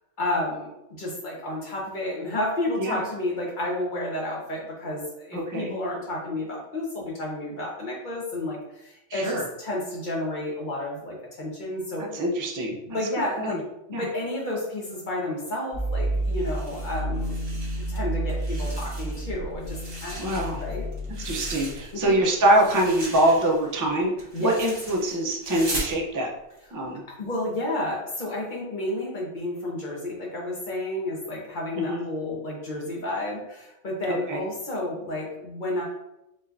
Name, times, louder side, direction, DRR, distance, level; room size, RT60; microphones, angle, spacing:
voice 1, 0.2-0.7 1.0-12.1 12.9-13.6 14.0-20.3 20.6-20.9 21.9-22.2 24.3-24.5 27.1-35.8, left 1 dB, 40° left, -3 dB, 1.2 m, -31 dB
voice 2, 5.3-5.8 9.1-9.5 12.0-13.0 13.4-13.6 13.9-14.1 20.2-20.6 21.2-24.1 24.4-26.3 26.7-27.0 31.7-32.0 34.1-34.4, right 1 dB, 25° right, -1 dB, 0.4 m, -24 dB
sound 1, 15.7-23.7, right 1 dB, 55° right, 2.0 m, -32 dB
sound 2, 16.3-18.0 18.3-19.3 19.6-22.1 22.4-26.0, right 2 dB, 80° right, 1.7 m, -38 dB
5.3 x 3.2 x 2.6 m, 0.87 s
omnidirectional pair, 1.4 m